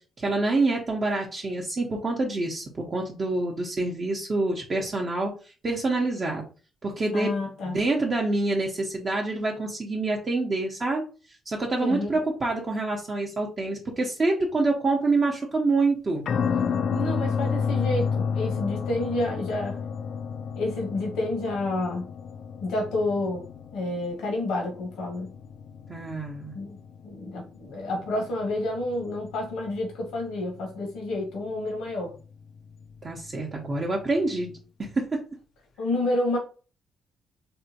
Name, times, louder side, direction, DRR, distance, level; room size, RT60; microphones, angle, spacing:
voice 1, 0.2-5.3 5.6-6.4 6.8-7.3 7.6-11.0 11.5-16.2 25.9-26.5 33.0-34.5 34.8-35.2, right 2 dB, 35° right, -1 dB, 0.7 m, -26 dB
voice 2, 7.1-7.8 11.8-12.1 16.9-19.8 20.5-22.1 22.6-23.4 23.7-25.3 26.5-26.8 27.0-32.1 35.8-36.4, left 2 dB, 85° left, 0 dB, 1.0 m, -29 dB
sound 1, 16.2-34.5, left 6 dB, 60° left, 0.3 m, -32 dB
3.5 x 2.1 x 2.7 m, 0.36 s
cardioid pair, 90°, 0 cm